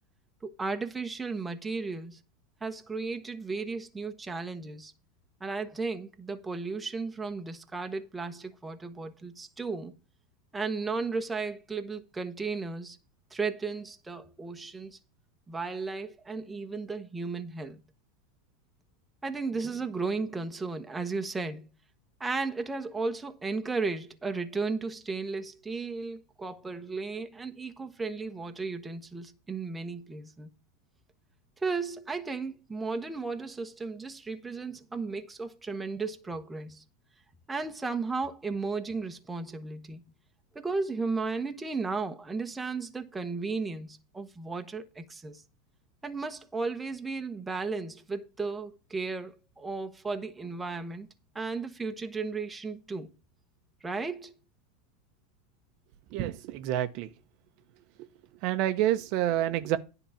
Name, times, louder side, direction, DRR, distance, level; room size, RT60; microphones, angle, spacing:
voice 1, 0.4-2.2 2.6-4.9 5.4-9.9 10.5-13.0 13.3-15.0 15.5-17.8 19.2-21.7 22.2-30.5 31.6-36.8 37.5-40.0 40.5-45.4 46.0-51.1 51.3-53.1 53.8-54.3, right 4 dB, 10° right, 1.1 m, -34 dB
voice 2, 56.1-57.1 58.0-58.1 58.4-59.8, right 12 dB, 55° right, 0.8 m, -28 dB
10.0 x 3.9 x 7.0 m
supercardioid pair, 125°, 0 cm